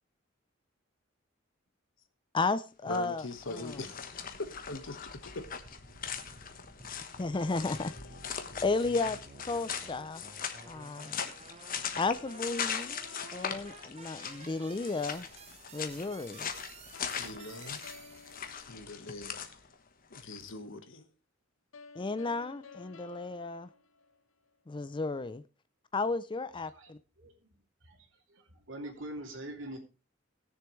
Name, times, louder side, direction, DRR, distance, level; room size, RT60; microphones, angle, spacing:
voice 1, 2.3-3.2 3.5-3.8 7.2-7.9 8.6-9.2 9.5-10.2 10.7-11.2 12.0-13.0 13.3-15.3 15.7-16.5 21.9-23.7 24.7-25.4 25.9-27.0, left 3 dB, 25° left, 0.4 m, -33 dB
sound 1, 2.8-20.5, left 7 dB, 45° left, 1.2 m, -41 dB
voice 2, 2.9-5.5 17.2-17.8 18.6-19.6 20.1-21.1, left 2 dB, 75° left, 1.5 m, -42 dB
sound 2, 4.3-18.7, right 3 dB, 35° right, 0.9 m, -53 dB
sound 3, 7.3-9.5 12.1-14.6 16.9-19.5 21.7-24.6, left 4 dB, 90° left, 0.9 m, -54 dB
voice 3, 26.7-27.5 27.8-29.8, right 1 dB, 70° right, 2.9 m, -44 dB
19.5 x 6.9 x 3.2 m
head